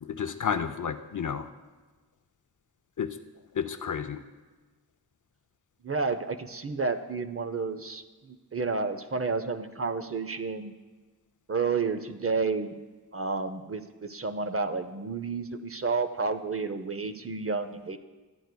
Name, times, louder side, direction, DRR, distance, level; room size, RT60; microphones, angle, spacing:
voice 1, 0.0-1.5 3.0-3.2 3.5-4.2, left 7 dB, 55° left, 10 dB, 0.5 m, -31 dB
voice 2, 5.8-10.7 11.5-12.7 13.1-18.0, right 4 dB, 40° right, 9 dB, 0.5 m, -31 dB
13.0 x 9.3 x 2.2 m, 1.3 s
wide cardioid pair, 60°, 38 cm